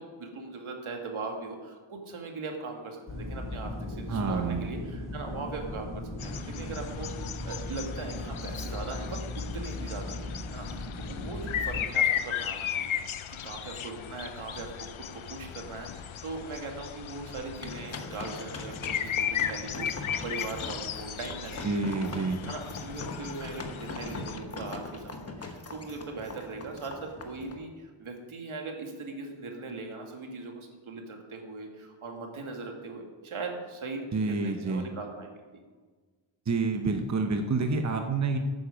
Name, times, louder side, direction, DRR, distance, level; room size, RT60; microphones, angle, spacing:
voice 1, 0.0-9.2 9.5-22.2 22.5-35.3, right 3 dB, 80° right, 2 dB, 2.1 m, -40 dB
sound 1, 3.1-11.8, left 1 dB, 50° left, 4.4 m, -37 dB
voice 2, 4.1-4.6 21.6-22.4 34.1-34.8 36.5-38.4, right 3 dB, 35° right, 5 dB, 0.9 m, -28 dB
sound 2, 6.2-24.4, left 9 dB, 75° left, 0.8 m, -36 dB
sound 3, 17.6-27.6, left 2 dB, 30° left, 1.2 m, -41 dB
12.0 x 9.1 x 5.1 m, 1.4 s
wide cardioid pair, 145°, 48 cm